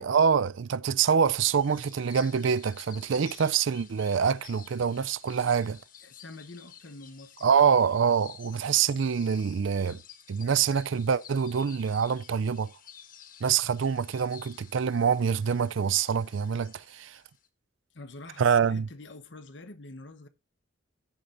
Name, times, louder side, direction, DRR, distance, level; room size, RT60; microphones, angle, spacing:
voice 1, 0.0-5.8 7.4-10.0 10.3-12.7 13.4-17.2 18.4-18.9, right 6 dB, 70° right, 0.4 m, -25 dB
sound 1, 1.5-17.5, left 9 dB, 45° left, 1.2 m, -52 dB
voice 2, 6.0-7.7 17.9-20.3, left 2 dB, 60° left, 1.1 m, -46 dB
15.5 x 6.6 x 2.6 m
head